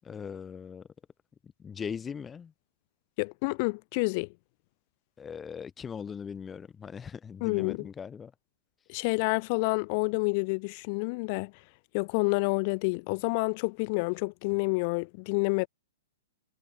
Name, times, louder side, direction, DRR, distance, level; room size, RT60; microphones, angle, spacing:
voice 1, 0.0-0.8 1.6-2.5 5.2-8.3, left 7 dB, 10° left, 2.5 m, -39 dB
voice 2, 3.2-4.3 7.4-7.9 8.9-11.5 11.9-15.7, left 31 dB, 35° left, 1.6 m, -28 dB
hypercardioid pair, 160°, 0 cm